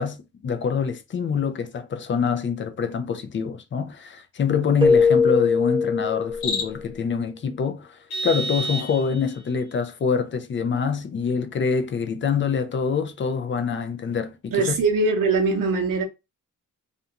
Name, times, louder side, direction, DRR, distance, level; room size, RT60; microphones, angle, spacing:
voice 1, 0.0-14.8, left 6 dB, 35° left, 0.4 m, -25 dB
Keyboard (musical), 4.8-6.8, left 5 dB, 15° right, 0.5 m, -20 dB
Cricket, 6.2-7.0, left 5 dB, 55° left, 0.8 m, -30 dB
Vehicle horn car horn honking, 8.1-9.5, right 2 dB, 80° left, 0.9 m, -30 dB
voice 2, 14.5-16.0, right 3 dB, 65° right, 0.7 m, -21 dB
2.5 x 2.2 x 2.8 m
wide cardioid pair, 120°, 36 cm